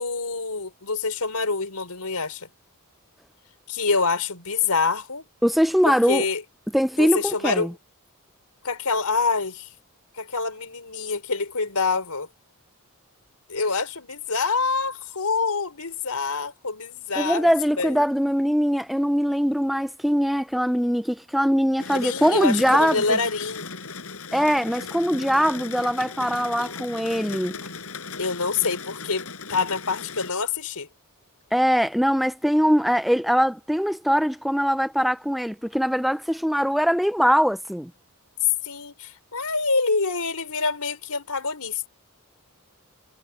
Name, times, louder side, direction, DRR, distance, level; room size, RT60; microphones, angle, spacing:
voice 1, 0.0-2.5 3.7-5.2 5.8-6.4 7.0-7.7 8.6-9.7 10.2-12.3 13.5-17.5 17.8-17.9 21.9-23.8 28.2-30.9 38.6-41.9, left 4 dB, 85° left, 4.4 m, -26 dB
voice 2, 5.4-6.2 6.7-7.7 17.2-23.2 24.3-27.6 31.5-37.9, equal, ahead, 0.5 m, -22 dB
sound 1, 21.8-30.3, left 4 dB, 70° left, 5.9 m, -37 dB
head